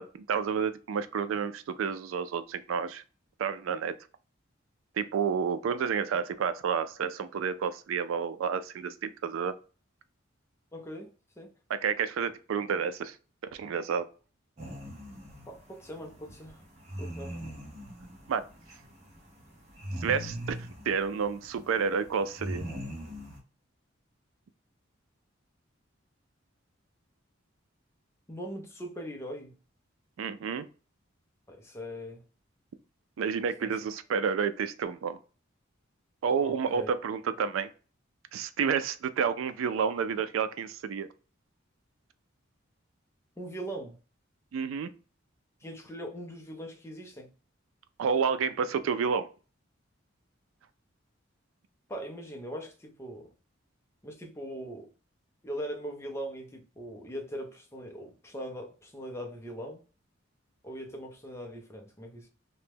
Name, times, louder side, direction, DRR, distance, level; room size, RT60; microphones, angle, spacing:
voice 1, 0.0-3.0 3.4-3.9 5.0-9.6 11.7-13.2 13.5-14.1 18.3-18.4 20.0-20.6 20.9-22.6 30.2-30.7 33.2-35.2 36.2-37.7 38.3-41.1 44.5-44.9 48.0-49.3, right 6 dB, 85° right, 0.3 m, -30 dB
voice 2, 10.7-11.5 15.5-16.6 17.0-17.4 28.3-29.6 31.5-32.2 33.6-33.8 36.4-36.9 43.4-44.0 45.6-47.3 51.9-53.3 54.0-54.9 55.4-59.8 60.6-62.3, equal, 15° left, 0.5 m, -41 dB
sound 1, 14.6-23.4, equal, 35° right, 0.9 m, -41 dB
2.8 x 2.1 x 3.4 m
head